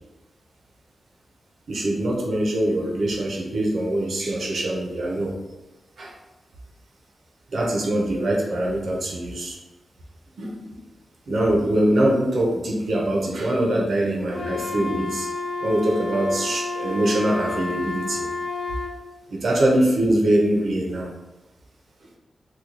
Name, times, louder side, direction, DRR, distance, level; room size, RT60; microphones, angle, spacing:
voice 1, 1.7-5.4 6.0-6.1 7.5-9.6 10.4-10.8 11.3-15.3 15.6-18.3 19.3-21.1, right 1 dB, 60° right, -1 dB, 0.7 m, -23 dB
Wind instrument woodwind instrument, 14.3-19.0, left 3 dB, 60° left, 0.5 m, -30 dB
3.0 x 2.3 x 3.7 m, 1.0 s
wide cardioid pair, 175°, 0 cm